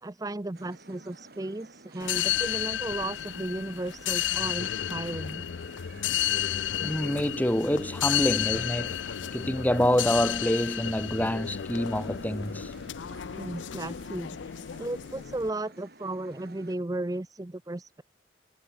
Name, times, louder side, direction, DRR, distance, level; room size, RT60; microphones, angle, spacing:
voice 1, 0.0-5.5 13.4-14.4 14.8-18.0, right 2 dB, 20° right, 0.5 m, -35 dB
sound 1, 0.5-16.7, right 2 dB, 55° right, 4.1 m, -52 dB
sound 2, 2.0-15.5, left 11 dB, 80° left, 0.5 m, -32 dB
voice 2, 6.8-9.0 9.3-12.7, equal, 10° left, 1.6 m, -27 dB
head